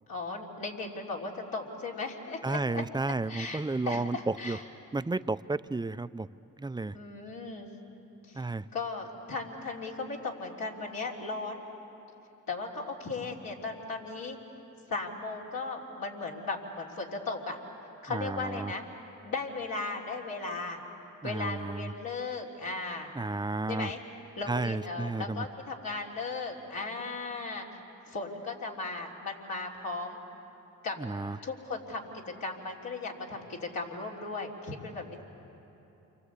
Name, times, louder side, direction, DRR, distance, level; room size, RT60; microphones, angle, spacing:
voice 1, 0.1-2.8 3.3-4.6 6.9-7.7 8.3-11.6 12.5-14.4 14.9-17.6 18.0-18.9 19.2-20.8 21.2-23.1 23.7-24.0 24.4-27.7 28.1-30.2 30.8-31.0 31.4-35.2, left 3 dB, 75° left, -3 dB, 3.6 m, -37 dB
voice 2, 2.4-4.6 4.9-6.3 6.6-6.9 8.4-8.7 18.1-18.7 21.2-21.9 23.2-23.9 24.5-25.5 31.0-31.4, right 3 dB, 10° right, 13 dB, 0.5 m, -32 dB
29.0 x 24.5 x 8.3 m, 3.0 s
cardioid pair, 60°, 34 cm